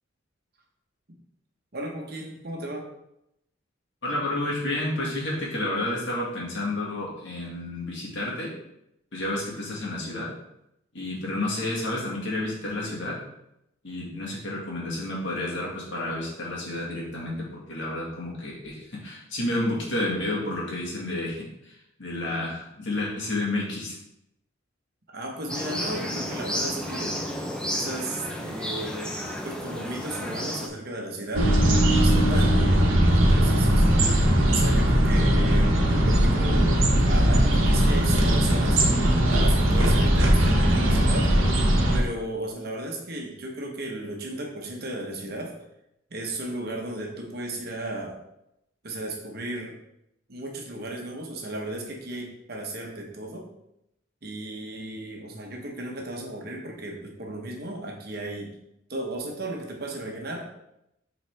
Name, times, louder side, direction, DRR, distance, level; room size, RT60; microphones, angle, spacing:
voice 1, 1.7-2.9 25.1-27.2 27.7-29.1 29.4-31.5 31.9-32.8 33.1-33.9 34.5-36.8 37.0-38.8 39.3-41.3 41.9-45.5 46.1-48.2 48.8-49.7 50.3-53.5 54.2-58.5 58.9-60.4, right 1 dB, 50° right, 0 dB, 1.1 m, -35 dB
voice 2, 4.0-8.5 9.1-10.3 10.9-13.2 13.8-24.0, left 1 dB, 65° left, -4 dB, 1.9 m, -30 dB
sound 1, 25.5-30.7, equal, 5° left, 0.6 m, -32 dB
sound 2, 31.3-42.0, right 1 dB, 85° right, 1.1 m, -20 dB
7.0 x 4.0 x 3.4 m, 0.83 s
head